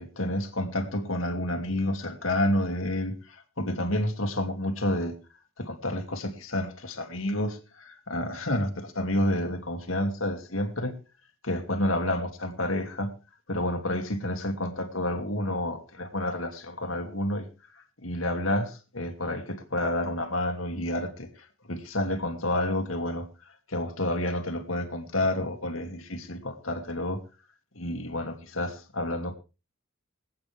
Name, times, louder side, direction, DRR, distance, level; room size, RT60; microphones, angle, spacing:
voice 1, 0.0-5.2 5.6-11.0 11.4-13.1 13.5-17.5 18.0-23.3 23.7-27.2 27.7-29.3, left 1 dB, 70° left, 2.5 m, -29 dB
26.0 x 8.9 x 3.4 m
head